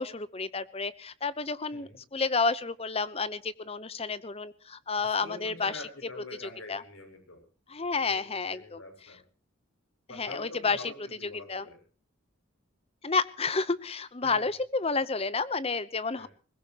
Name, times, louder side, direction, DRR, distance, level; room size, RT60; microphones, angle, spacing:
voice 1, 0.0-5.8 6.4-6.8 7.7-8.8 10.1-10.8 11.5-11.6 13.0-16.3, left 4 dB, 30° left, 16 dB, 0.9 m, -30 dB
voice 2, 5.0-7.4 7.8-9.2 10.1-11.8 14.2-14.5 16.1-16.3, left 2 dB, 85° left, 5 dB, 6.6 m, -46 dB
22.0 x 20.0 x 3.0 m, 0.38 s
head